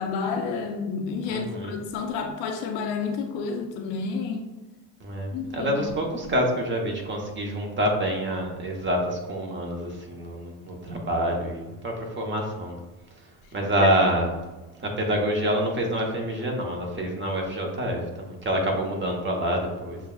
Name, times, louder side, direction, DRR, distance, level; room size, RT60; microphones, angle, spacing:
voice 1, 0.0-4.6 5.3-5.7, left 5 dB, 70° left, 0.8 m, -30 dB
voice 2, 1.3-1.8 5.0-12.8 13.5-14.3 14.8-20.0, equal, 25° right, 0.9 m, -27 dB
6.9 x 2.3 x 2.3 m
supercardioid pair, 110°, 46 cm